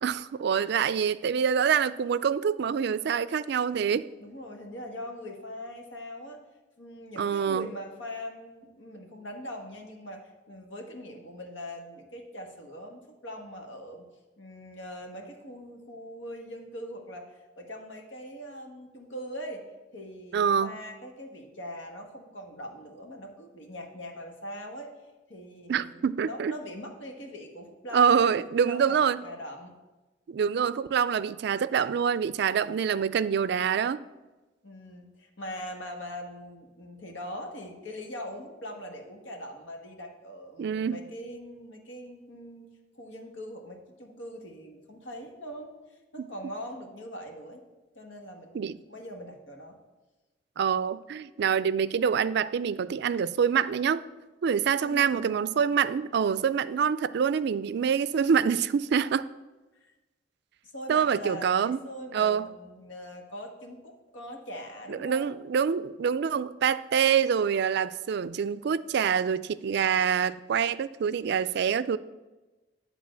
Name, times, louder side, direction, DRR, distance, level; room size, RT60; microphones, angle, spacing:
voice 1, 0.0-4.1 7.2-7.7 20.3-20.8 25.7-26.5 27.9-29.2 30.3-34.0 40.6-41.0 46.2-46.3 48.5-48.8 50.6-54.0 54.4-59.3 60.9-61.8 62.1-62.5 64.9-72.0, right 7 dB, 60° right, 0.3 m, -26 dB
voice 2, 4.2-6.4 6.8-14.0 14.4-19.6 19.9-25.0 25.3-29.7 34.6-42.7 42.9-47.7 47.9-49.8 54.8-55.4 59.8-59.9 60.6-65.3, equal, 85° left, 1.5 m, -42 dB
11.0 x 3.9 x 7.4 m
head